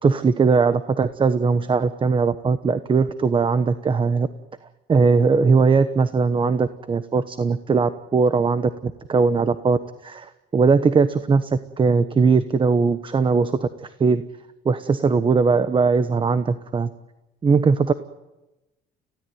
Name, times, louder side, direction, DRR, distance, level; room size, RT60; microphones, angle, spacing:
voice 1, 0.0-4.3 4.9-14.2 14.6-16.9 17.4-17.9, right 4 dB, 30° right, 12 dB, 1.1 m, -20 dB
29.5 x 17.0 x 9.4 m, 1.0 s
cardioid pair, 110°, 17 cm